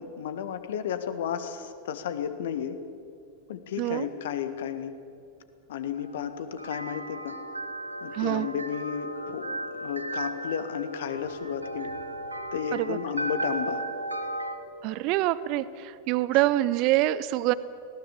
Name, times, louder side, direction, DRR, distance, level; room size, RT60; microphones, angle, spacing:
voice 1, 0.0-2.8 3.5-4.9 5.7-7.4 8.0-11.9 12.5-13.8, left 8 dB, 60° left, 10 dB, 1.5 m, -33 dB
voice 2, 3.8-4.1 8.1-8.5 12.7-13.0 14.8-17.5, right 16 dB, 40° right, 17 dB, 0.8 m, -25 dB
sound 1, 6.0-14.5, right 1 dB, 85° right, 1.5 m, -35 dB
19.5 x 17.0 x 8.7 m, 2.5 s
figure-of-eight pair, 90°, 0 cm